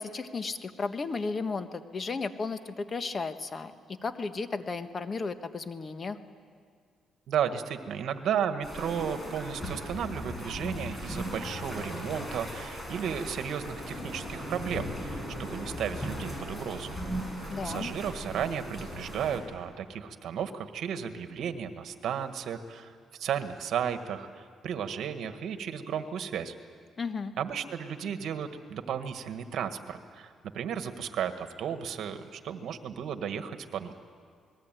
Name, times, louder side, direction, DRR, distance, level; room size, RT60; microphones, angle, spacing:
voice 1, 0.0-6.2 17.5-17.9 27.0-27.3, left 4 dB, 35° left, 9 dB, 1.4 m, -34 dB
voice 2, 7.3-17.0 17.6-22.9 23.2-26.5 27.4-33.9, right 8 dB, 70° right, 8 dB, 1.6 m, -34 dB
sound 1, 8.6-19.4, equal, 15° left, 7.6 m, -38 dB
28.0 x 20.5 x 9.2 m, 2.1 s
cardioid pair, 90°, 0 cm